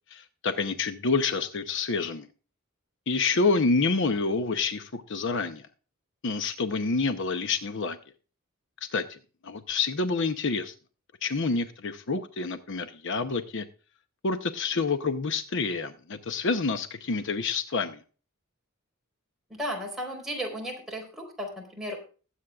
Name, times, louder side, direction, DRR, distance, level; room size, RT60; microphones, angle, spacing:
voice 1, 0.1-2.3 3.1-5.7 6.2-8.0 8.9-10.7 11.2-13.6 14.2-18.0, left 4 dB, 60° left, 9 dB, 0.8 m, -28 dB
voice 2, 19.6-22.0, equal, ahead, -1 dB, 4.1 m, -34 dB
20.5 x 8.3 x 2.4 m, 0.37 s
head